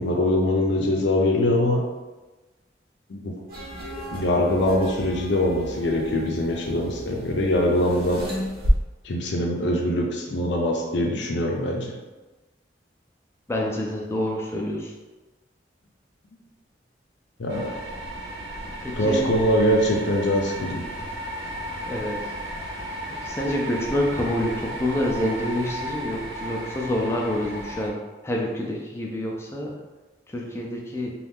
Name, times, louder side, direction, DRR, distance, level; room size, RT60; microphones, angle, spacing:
voice 1, 0.0-1.8 3.1-3.3 4.1-8.2 9.0-11.9 17.4-17.7 18.9-20.9, left 1 dB, 80° left, 0 dB, 0.5 m, -23 dB
sound 1, 3.5-8.7, equal, 55° right, 0.8 m, -32 dB
voice 2, 13.5-14.9 18.8-19.2 21.9-22.3 23.2-28.0 28.2-29.8 30.3-31.1, left 1 dB, 15° left, -2 dB, 0.4 m, -27 dB
sound 2, 17.5-27.9, equal, 85° right, 0.7 m, -34 dB
2.7 x 2.3 x 3.5 m, 1.2 s
head